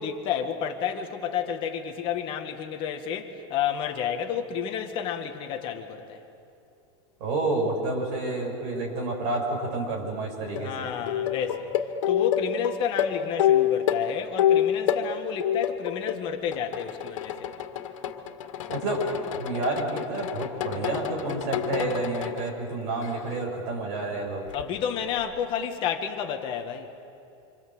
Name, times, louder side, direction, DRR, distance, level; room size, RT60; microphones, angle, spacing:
voice 1, 0.0-6.2 10.6-11.7 12.1-17.5 24.5-26.9, left 8 dB, 30° left, 5 dB, 1.9 m, -31 dB
voice 2, 7.2-10.9 18.7-19.1 19.3-24.5, right 2 dB, 45° right, 0 dB, 7.3 m, -29 dB
sound 1, 10.5-10.7 11.1-15.1 15.4-16.2 16.5-22.5 23.0-23.4 24.5-24.6, left 10 dB, 90° left, 2.1 m, -27 dB
27.0 x 26.5 x 7.9 m, 2.7 s
supercardioid pair, 170°, 16 cm